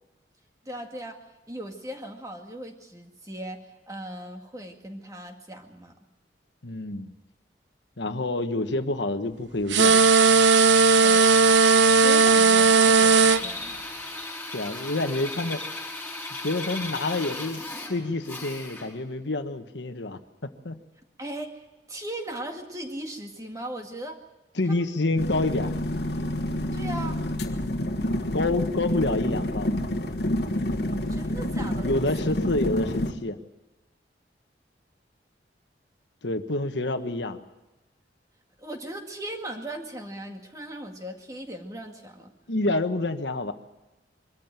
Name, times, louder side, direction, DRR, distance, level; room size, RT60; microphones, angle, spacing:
voice 1, 0.7-1.2 1.5-5.9 11.0-11.3 11.9-13.9 21.2-24.2 24.7-24.9 26.7-27.2 31.1-32.0 38.6-42.3, right 1 dB, 20° right, 3 dB, 2.0 m, -38 dB
voice 2, 6.6-7.1 8.0-10.0 14.5-15.6 16.4-17.6 17.9-20.8 24.5-25.7 28.3-29.8 31.8-33.4 36.2-37.4 42.5-43.5, left 2 dB, 80° left, 8 dB, 1.3 m, -28 dB
Drill, 9.7-19.0, left 2 dB, 10° left, 5.0 m, -37 dB
sound 1, 9.7-13.4, right 4 dB, 80° right, 0.6 m, -17 dB
sound 2, 25.2-33.1, left 1 dB, 65° left, 1.6 m, -28 dB
23.0 x 14.0 x 9.0 m, 1.0 s
head